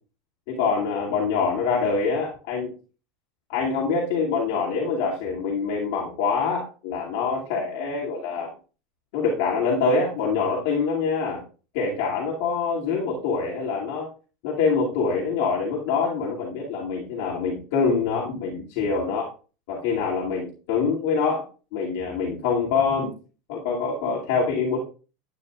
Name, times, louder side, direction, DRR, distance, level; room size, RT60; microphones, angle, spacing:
voice 1, 0.5-2.7 3.5-8.5 9.1-11.4 11.7-14.1 14.4-19.3 19.7-21.4 21.7-23.1 23.5-24.8, left 5 dB, 55° left, -4 dB, 2.5 m, -25 dB
11.0 x 9.2 x 2.4 m, 0.35 s
supercardioid pair, 180°, 0 cm